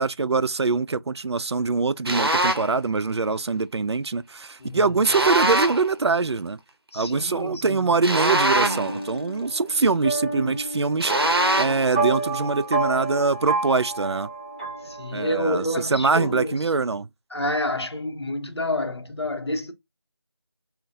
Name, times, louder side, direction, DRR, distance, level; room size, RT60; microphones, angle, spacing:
voice 1, 0.0-6.6 6.9-11.1 11.6-14.3 15.1-15.6 15.9-17.1, right 4 dB, 85° right, 0.4 m, -23 dB
sound 1, 2.1-2.7 5.0-5.9 8.0-9.0 11.0-11.9, right 1 dB, 65° right, 0.8 m, -23 dB
voice 2, 4.6-5.2 6.9-8.0 14.8-16.7 17.3-19.7, left 1 dB, 80° left, 1.1 m, -29 dB
sound 2, 8.6-15.6, right 3 dB, 15° right, 0.7 m, -29 dB
4.3 x 2.4 x 2.5 m
figure-of-eight pair, 175°, 14 cm